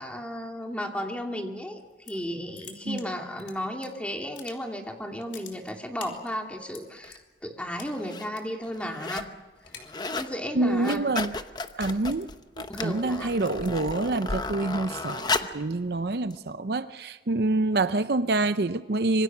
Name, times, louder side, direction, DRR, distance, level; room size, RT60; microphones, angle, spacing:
voice 1, 0.0-1.8 2.1-9.3 10.1-11.0 12.7-13.3, equal, 5° left, 2.6 m, -34 dB
sound 1, 1.8-2.3 2.5-3.9 4.2-4.9 5.1-7.2 7.8-8.4 8.7-9.0 9.3-10.4 10.8-15.3, left 2 dB, 80° left, 3.9 m, -43 dB
sound 2, 7.0-7.2 7.9-8.3 8.6-9.3 9.6-10.3 10.7-15.6 16.3-16.4, left 3 dB, 25° left, 0.9 m, -34 dB
voice 2, 10.5-11.3 11.8-12.3 12.6-19.2, right 2 dB, 60° right, 0.7 m, -27 dB
26.0 x 24.0 x 6.1 m
head